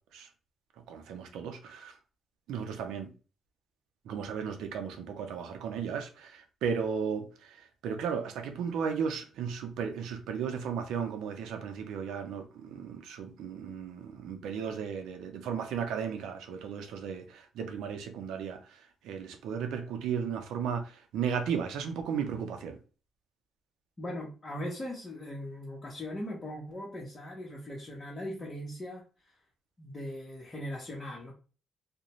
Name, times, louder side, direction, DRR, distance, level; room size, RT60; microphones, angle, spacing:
voice 1, 0.9-1.9 2.5-3.1 4.1-22.8, right 7 dB, 85° right, 0.5 m, -35 dB
voice 2, 24.0-29.0 29.8-31.3, left 1 dB, 25° left, 0.9 m, -39 dB
2.5 x 2.1 x 3.0 m
cardioid pair, 90°, 0 cm